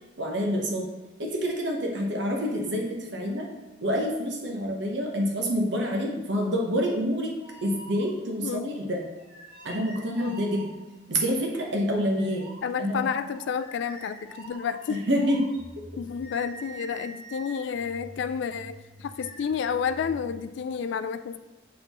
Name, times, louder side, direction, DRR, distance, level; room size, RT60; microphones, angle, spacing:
voice 1, 0.2-0.9 1.2-3.5 3.8-7.4 7.6-9.0 9.6-10.6 11.1-12.5 12.8-13.0 14.9-15.4, equal, 70° right, 0 dB, 0.9 m, -27 dB
sound 1, 7.4-8.4 9.2-11.1 12.1-20.4, right 2 dB, 50° right, 1.9 m, -46 dB
voice 2, 12.6-15.0 16.0-21.4, left 6 dB, 75° left, 12 dB, 0.3 m, -30 dB
7.3 x 4.4 x 2.9 m, 1.1 s
head